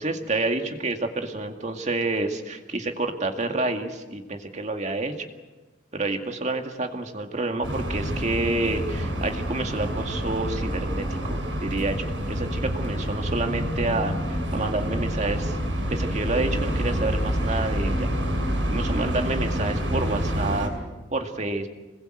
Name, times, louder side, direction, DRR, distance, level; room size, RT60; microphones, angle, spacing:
voice 1, 0.0-5.3 5.9-15.6 15.9-18.1 18.7-20.7 21.1-21.7, right 2 dB, 40° right, 4 dB, 2.1 m, -28 dB
sound 1, 7.6-20.7, equal, 85° right, 6.3 m, -27 dB
26.5 x 21.0 x 7.9 m, 1.2 s
head